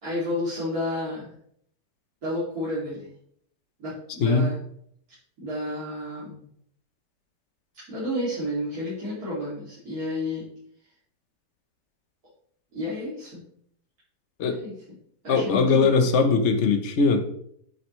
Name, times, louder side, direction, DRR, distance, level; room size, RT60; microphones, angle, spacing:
voice 1, 0.0-1.3 2.2-3.1 3.8-4.6 5.4-6.5 7.9-10.4 12.7-13.4 14.5-14.7 15.2-15.9, left 1 dB, 60° right, -11 dB, 3.3 m, -31 dB
voice 2, 15.3-17.2, left 4 dB, 50° left, 6 dB, 1.1 m, -20 dB
8.9 x 7.8 x 3.2 m, 0.68 s
omnidirectional pair, 1.8 m